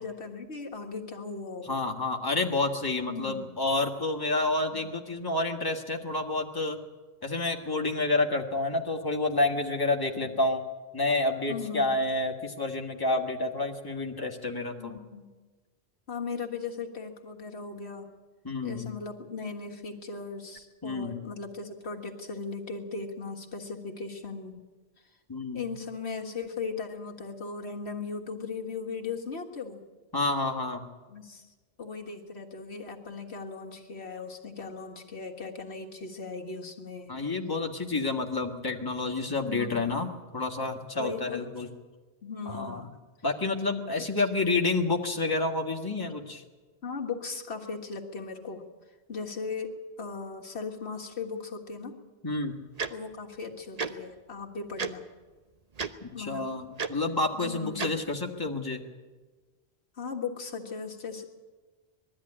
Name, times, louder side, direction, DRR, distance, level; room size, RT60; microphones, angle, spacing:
voice 1, 0.0-1.9 3.1-3.5 4.7-4.8 10.2-10.3 11.5-12.0 14.8-15.3 16.1-18.1 18.6-24.6 25.5-29.8 31.1-31.4 31.8-37.1 39.4-39.9 41.0-41.4 42.2-42.8 46.8-48.6 49.1-51.9 52.9-55.1 56.1-56.4 57.3-58.0 60.0-61.2, left 4 dB, 85° left, 1 dB, 2.0 m, -38 dB
voice 2, 1.6-6.8 7.2-10.6 10.9-15.0 18.4-18.9 20.8-21.2 25.3-25.7 30.1-30.8 37.1-41.7 42.4-42.8 43.2-46.4 52.2-52.6 56.0-58.8, left 2 dB, 20° left, 1 dB, 1.7 m, -29 dB
Tick-tock, 52.8-52.9 53.8-53.9 54.8-54.9 55.8-55.9 56.8-56.9 57.8-57.9, right 5 dB, 40° right, 0.9 m, -31 dB
21.0 x 13.0 x 10.0 m, 1.3 s
omnidirectional pair, 1.1 m